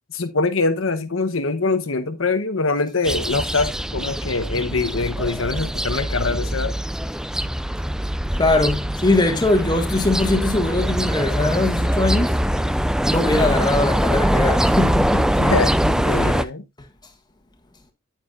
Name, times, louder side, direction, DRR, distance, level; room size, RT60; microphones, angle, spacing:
voice 1, 0.1-6.7 15.4-16.6, left 3 dB, 70° left, 1.0 m, -23 dB
sound 1, 3.0-16.4, equal, 5° right, 0.4 m, -22 dB
voice 2, 8.4-12.4 13.1-15.3 16.1-16.5, left 2 dB, 20° left, 1.7 m, -21 dB
9.3 x 9.2 x 2.5 m
head